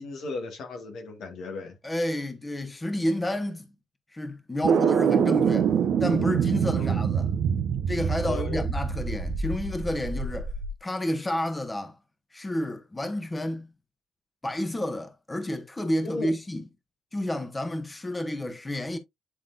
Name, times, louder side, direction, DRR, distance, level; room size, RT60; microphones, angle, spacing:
voice 1, 0.0-1.8 6.8-7.0 8.2-8.7 16.0-16.3, left 3 dB, 70° left, 1.7 m, -35 dB
voice 2, 1.8-3.7 4.1-5.7 6.0-7.3 7.9-10.5 10.8-12.0 12.3-13.7 14.4-16.7 17.1-19.0, left 1 dB, 20° left, 1.4 m, -30 dB
sound 1, 4.6-10.7, right 7 dB, 70° right, 0.9 m, -25 dB
10.0 x 3.7 x 2.5 m
hypercardioid pair, 50°, 0 cm